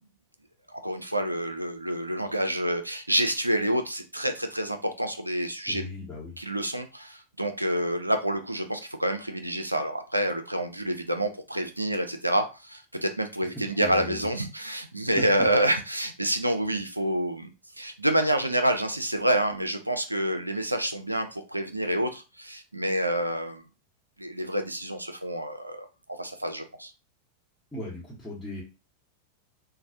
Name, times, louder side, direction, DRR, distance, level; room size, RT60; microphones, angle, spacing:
voice 1, 0.7-5.8 6.4-23.7 24.2-25.9 26.2-26.9, right 1 dB, 85° right, 7 dB, 0.3 m, -28 dB
voice 2, 5.7-6.4 13.7-14.3 15.2-15.3 27.7-28.6, left 1 dB, 10° left, -8 dB, 1.0 m, -37 dB
3.1 x 2.0 x 2.6 m, 0.29 s
figure-of-eight pair, 90°, 0 cm